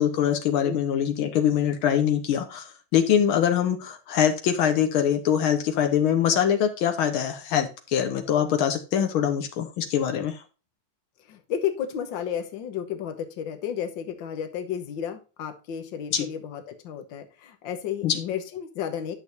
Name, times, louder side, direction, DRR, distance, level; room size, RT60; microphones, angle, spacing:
voice 1, 0.0-10.4 16.1-16.3 18.0-18.2, left 9 dB, 85° left, 6 dB, 1.8 m, -23 dB
voice 2, 11.3-19.2, left 9 dB, 65° left, 7 dB, 1.7 m, -32 dB
10.0 x 6.4 x 2.6 m, 0.32 s
omnidirectional pair, 2.3 m